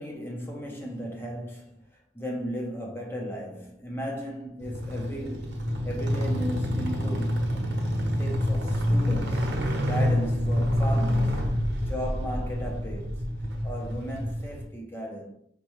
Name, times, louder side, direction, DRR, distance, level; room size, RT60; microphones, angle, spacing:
voice 1, 0.0-7.4 8.2-11.5 11.9-13.3 13.6-15.3, equal, 15° left, 0.7 m, -36 dB
sound 1, 4.6-14.6, equal, 90° right, 0.8 m, -27 dB
5.4 x 2.3 x 3.1 m
head